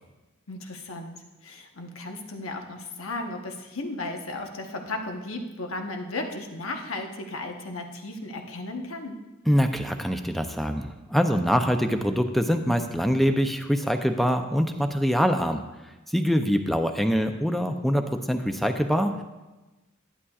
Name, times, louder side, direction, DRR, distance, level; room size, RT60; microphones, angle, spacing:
voice 1, 0.5-9.2, left 2 dB, 85° left, 3 dB, 1.1 m, -35 dB
voice 2, 9.5-15.6 16.1-19.2, equal, ahead, 6 dB, 0.5 m, -24 dB
11.0 x 11.0 x 2.4 m, 1.1 s
head